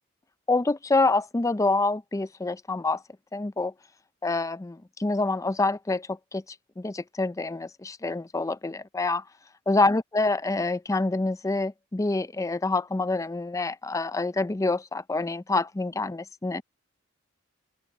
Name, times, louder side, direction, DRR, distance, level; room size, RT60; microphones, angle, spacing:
voice 1, 0.5-3.0 3.3-3.7 4.2-6.4 6.8-9.2 9.7-16.6, left 3 dB, 15° left, 0.4 m, -26 dB
open air
head